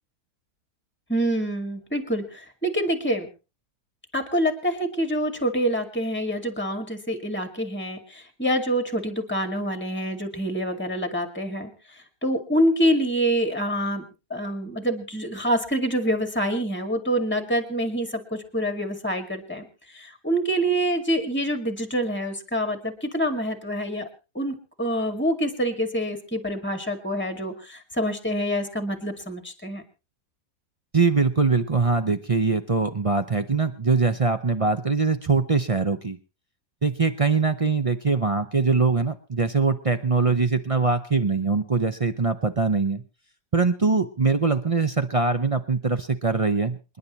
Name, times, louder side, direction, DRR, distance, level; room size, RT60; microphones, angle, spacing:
voice 1, 1.1-3.3 4.1-11.7 12.2-14.0 14.3-19.7 19.9-24.1 24.3-29.8, equal, 5° left, 7 dB, 2.0 m, -26 dB
voice 2, 30.9-36.2 36.8-43.0 43.5-47.0, right 4 dB, 45° right, 9 dB, 0.4 m, -22 dB
27.5 x 10.5 x 3.1 m, 0.30 s
omnidirectional pair, 1.7 m